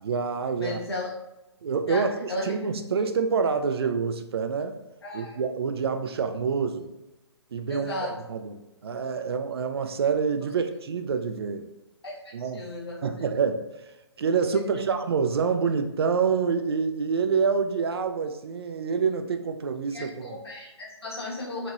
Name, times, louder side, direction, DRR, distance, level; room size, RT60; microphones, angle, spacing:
voice 1, 0.0-0.8 1.6-4.8 5.1-6.9 7.5-11.7 12.3-12.7 13.0-13.7 14.2-20.4, right 5 dB, 60° right, 7 dB, 0.4 m, -27 dB
voice 2, 0.6-1.1 1.9-2.5 5.0-5.4 7.7-8.1 10.4-10.5 12.0-13.1 14.5-14.9 19.9-21.7, left 2 dB, 65° left, -3 dB, 1.1 m, -35 dB
2.9 x 2.8 x 2.3 m, 0.97 s
figure-of-eight pair, 130°, 15 cm